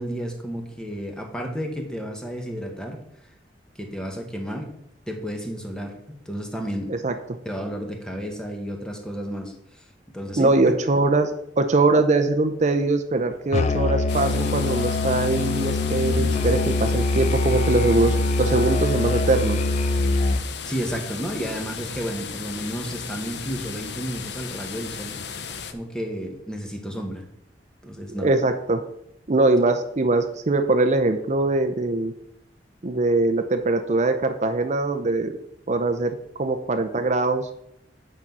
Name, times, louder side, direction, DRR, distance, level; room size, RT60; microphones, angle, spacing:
voice 1, 0.0-3.0 3.8-4.7 5.1-6.9 7.4-9.5 10.1-10.5 20.6-25.2 25.7-27.2 27.8-28.3, equal, 5° left, 3 dB, 1.4 m, -32 dB
voice 2, 10.4-19.6 28.2-28.8 29.3-32.1 32.8-35.4 35.7-37.5, right 2 dB, 40° right, 7 dB, 0.6 m, -22 dB
Musical instrument, 13.5-20.5, left 3 dB, 40° left, 0.4 m, -23 dB
sound 1, 14.1-25.7, left 6 dB, 70° left, 0.8 m, -35 dB
8.7 x 5.5 x 6.0 m, 0.75 s
head